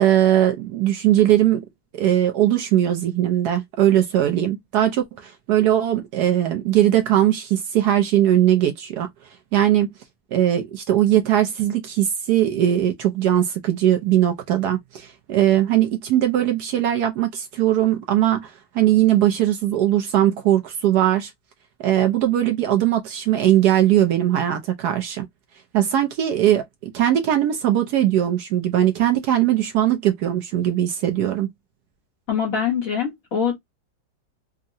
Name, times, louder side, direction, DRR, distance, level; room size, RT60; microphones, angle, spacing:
voice 1, 0.0-1.6 1.9-9.1 9.5-9.9 10.3-21.3 21.8-25.3 25.7-31.5, right 12 dB, 70° right, 1.0 m, -20 dB
voice 2, 32.3-33.6, left 7 dB, 55° left, 1.1 m, -23 dB
3.7 x 2.0 x 2.6 m
omnidirectional pair, 2.1 m